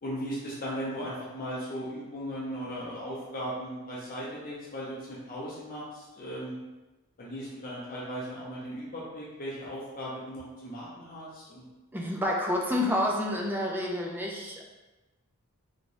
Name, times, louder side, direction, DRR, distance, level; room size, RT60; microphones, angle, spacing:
voice 1, 0.0-6.6 7.2-11.6, equal, 40° left, -6 dB, 0.6 m, -37 dB
voice 2, 11.9-14.6, left 1 dB, 10° right, -1 dB, 0.4 m, -29 dB
3.0 x 2.9 x 2.6 m, 1.1 s
head